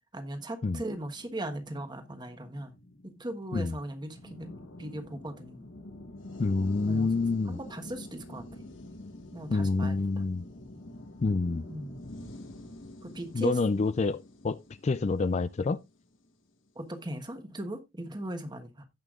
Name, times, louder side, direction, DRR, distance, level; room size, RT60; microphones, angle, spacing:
voice 1, 0.1-2.7 3.0-5.7 6.9-7.1 7.4-8.7 9.3-10.3 11.7-12.1 13.0-13.6 16.7-18.9, right 1 dB, 25° right, 1.3 m, -39 dB
sound 1, 1.0-16.3, left 1 dB, 85° left, 1.6 m, -47 dB
voice 2, 6.4-7.6 9.5-10.4 11.2-11.6 13.3-15.8, left 3 dB, 35° left, 0.4 m, -27 dB
16.5 x 5.6 x 2.4 m
head